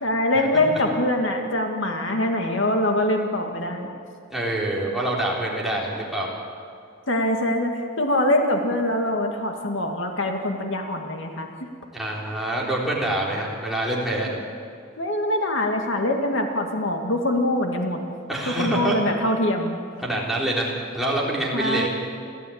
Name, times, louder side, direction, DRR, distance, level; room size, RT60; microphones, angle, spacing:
voice 1, 0.0-3.9 7.1-11.7 14.3-14.4 15.0-18.0 18.5-19.8 21.5-21.9, left 1 dB, 65° left, 3 dB, 2.0 m, -24 dB
voice 2, 4.3-6.3 11.9-14.3 18.3-19.0 20.0-21.9, right 1 dB, ahead, -5 dB, 3.9 m, -26 dB
29.5 x 13.5 x 8.7 m, 2.3 s
head